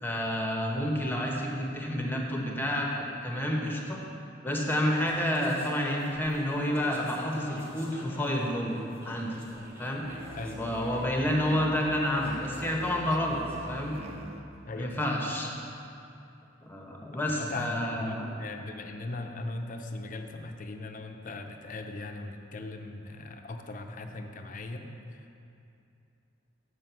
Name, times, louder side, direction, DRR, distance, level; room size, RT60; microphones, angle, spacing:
voice 1, 0.0-4.0 4.4-8.8 9.0-9.4 9.8-10.0 10.6-13.4 13.7-14.0 14.8-15.5 16.6-18.3, left 1 dB, 10° left, -1 dB, 0.9 m, -29 dB
sound 1, 4.6-14.0, left 1 dB, 10° right, 1.3 m, -47 dB
Musical instrument, 10.0-14.5, right 1 dB, 35° right, 0.5 m, -45 dB
voice 2, 14.7-15.1 17.3-25.4, left 2 dB, 45° left, 5 dB, 0.6 m, -39 dB
7.6 x 5.0 x 6.8 m, 2.7 s
head